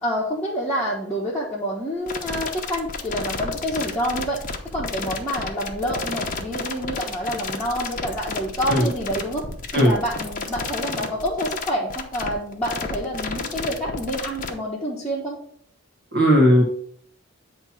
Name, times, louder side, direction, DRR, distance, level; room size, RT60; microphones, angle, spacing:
voice 1, 0.0-4.4 4.7-9.4 9.7-15.4, equal, 5° left, -8 dB, 1.1 m, -27 dB
sound 1, 2.1-14.5, left 4 dB, 35° left, 0.8 m, -31 dB
voice 2, 16.1-16.6, equal, 45° right, -1 dB, 1.2 m, -16 dB
8.8 x 2.9 x 5.9 m, 0.63 s
head